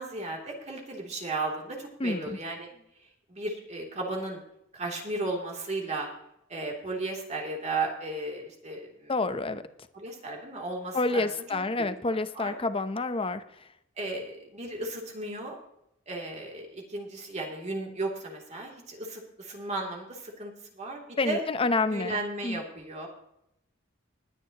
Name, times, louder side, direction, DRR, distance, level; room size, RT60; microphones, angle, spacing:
voice 1, 0.0-2.7 3.3-4.4 4.7-6.1 6.5-9.1 9.9-11.2 12.1-12.5 14.0-15.6 16.1-20.5 20.8-21.4 21.9-23.1, right 2 dB, 35° right, 0 dB, 2.9 m, -35 dB
voice 2, 2.0-2.4 9.1-9.6 10.9-13.7 21.2-22.6, left 3 dB, 30° left, 11 dB, 0.8 m, -29 dB
20.5 x 10.0 x 3.0 m, 0.79 s
head